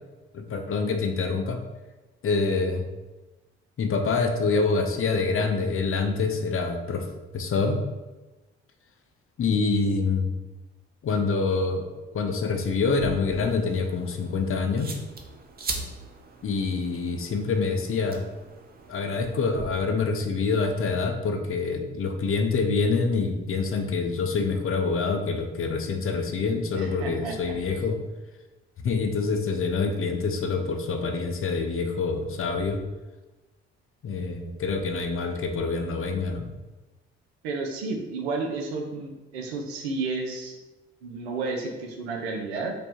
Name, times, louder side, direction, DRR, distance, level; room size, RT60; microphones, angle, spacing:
voice 1, 0.3-1.6 2.2-2.8 3.8-7.8 9.4-10.3 11.0-11.9 12.1-14.9 16.4-18.3 18.9-28.0 28.8-32.8 34.0-36.5, left 4 dB, 45° left, 5 dB, 0.7 m, -26 dB
sound 1, 12.8-19.6, right 3 dB, 30° right, 0.7 m, -40 dB
voice 2, 26.8-27.5 37.4-40.6 41.0-42.7, right 3 dB, 90° right, 3 dB, 0.5 m, -32 dB
3.2 x 2.2 x 4.2 m, 1.1 s
hypercardioid pair, 45°, 31 cm